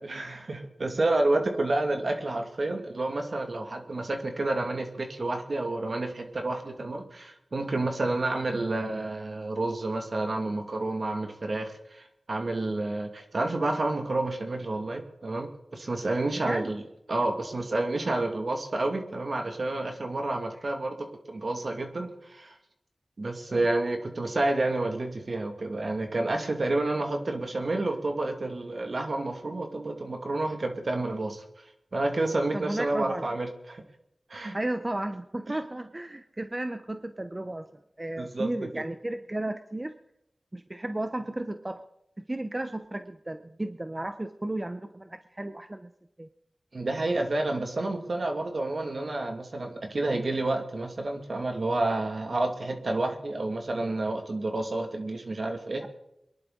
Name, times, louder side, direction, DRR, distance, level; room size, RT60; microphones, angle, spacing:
voice 1, 0.0-16.8 17.1-22.5 23.2-31.4 31.9-33.8 34.3-34.6 38.2-38.8 46.7-55.9, right 2 dB, 65° right, 4 dB, 2.3 m, -29 dB
voice 2, 32.5-33.2 34.5-37.7 38.0-39.9 40.5-41.8 42.3-45.9 46.2-46.3 55.8-55.9, right 1 dB, 30° right, 8 dB, 0.9 m, -34 dB
23.0 x 11.0 x 4.0 m, 0.81 s
cardioid pair, 40°, 0 cm